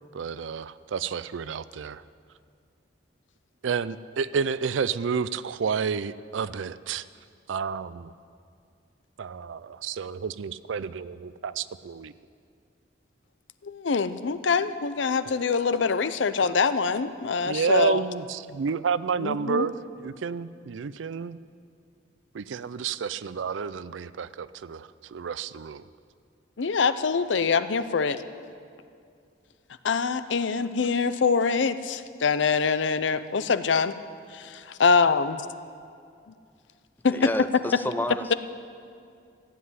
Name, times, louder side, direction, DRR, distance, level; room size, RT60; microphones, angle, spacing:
voice 1, 0.1-2.0 3.6-7.0 7.5-8.1 9.2-12.1 17.4-21.4 22.3-25.8, right 6 dB, 85° right, 16 dB, 0.4 m, -30 dB
voice 2, 13.6-18.0 19.2-19.7 26.6-28.2 29.8-33.9 34.8-35.4 37.0-37.3, left 5 dB, 80° left, 13 dB, 0.6 m, -24 dB
voice 3, 37.1-38.3, left 1 dB, 10° left, 10 dB, 0.4 m, -30 dB
14.5 x 7.7 x 9.6 m, 2.4 s
head